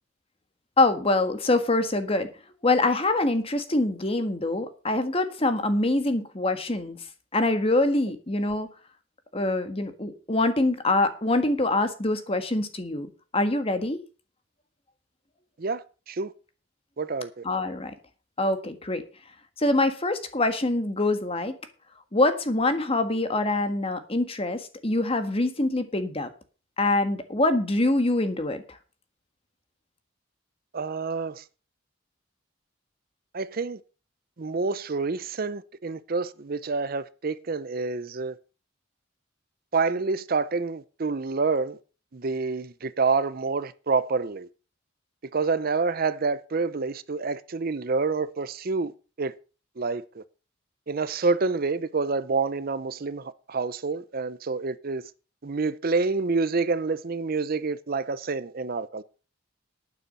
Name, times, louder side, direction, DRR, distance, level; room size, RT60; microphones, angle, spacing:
voice 1, 0.8-2.3 2.6-7.0 7.3-8.7 9.3-14.0 17.4-17.9 18.4-19.0 19.6-21.6 22.1-26.3 26.8-28.6, left 2 dB, 30° left, 1.6 m, -24 dB
voice 2, 15.6-16.3 17.0-17.4 30.7-31.4 33.3-33.8 34.4-38.4 39.7-41.8 42.1-44.5 45.3-48.9 49.2-49.3 49.8-50.2 50.9-55.1 55.4-59.0, right 4 dB, 50° right, 0.6 m, -28 dB
11.5 x 9.5 x 5.5 m
head